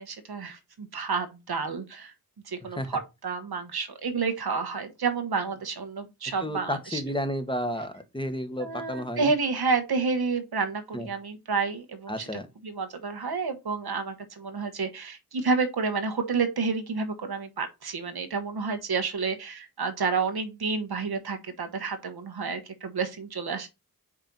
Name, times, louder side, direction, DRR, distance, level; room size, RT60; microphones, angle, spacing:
voice 1, 0.0-2.1 2.5-7.0 8.6-12.3 12.6-23.7, right 4 dB, 80° right, 1.2 m, -30 dB
voice 2, 6.4-9.3 10.9-11.1 12.1-12.5, equal, 15° left, 1.3 m, -32 dB
5.0 x 4.4 x 5.3 m
cardioid pair, 45°, 37 cm